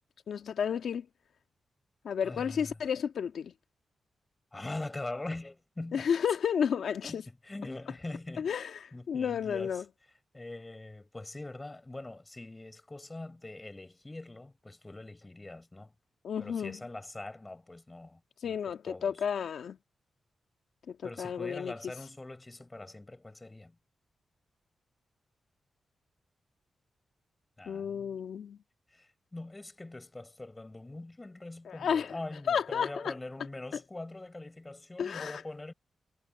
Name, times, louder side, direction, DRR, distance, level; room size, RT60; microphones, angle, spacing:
voice 1, 0.3-1.1 2.0-3.5 5.9-7.2 8.4-8.8 9.1-9.8 16.2-16.8 18.4-19.8 20.9-21.7 27.7-28.6 31.6-32.2 32.5-33.1 35.0-35.4, left 7 dB, 80° left, 1.5 m, -32 dB
voice 2, 2.2-2.8 4.5-6.1 7.0-9.8 10.3-15.9 16.4-19.2 21.0-23.8 27.6-28.2 28.9-35.7, left 2 dB, 25° left, 4.4 m, -43 dB
cardioid pair, 60°, 0 cm